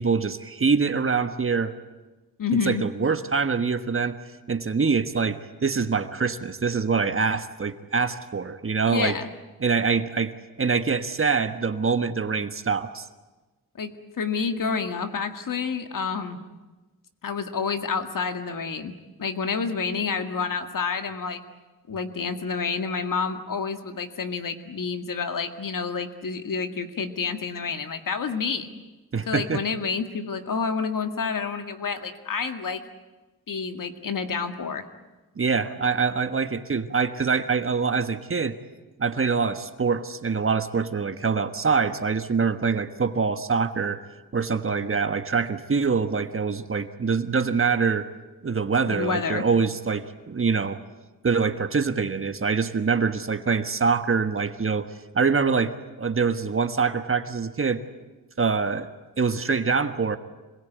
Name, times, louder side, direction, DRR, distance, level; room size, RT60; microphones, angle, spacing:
voice 1, 0.0-1.7 2.6-4.2 4.5-9.1 9.6-13.1 29.1-29.6 35.4-38.6 39.0-44.0 44.3-48.1 48.4-50.8 51.2-54.9 55.1-57.8 58.4-58.9 59.2-60.2, right 5 dB, 35° right, 9 dB, 1.4 m, -24 dB
voice 2, 2.4-2.8 8.9-9.3 13.8-16.4 17.2-18.9 19.2-21.4 21.9-28.7 29.3-32.8 33.5-34.8 48.9-49.4, left 5 dB, 60° left, 7 dB, 2.1 m, -29 dB
26.5 x 21.5 x 9.3 m, 1.2 s
wide cardioid pair, 125°, 37 cm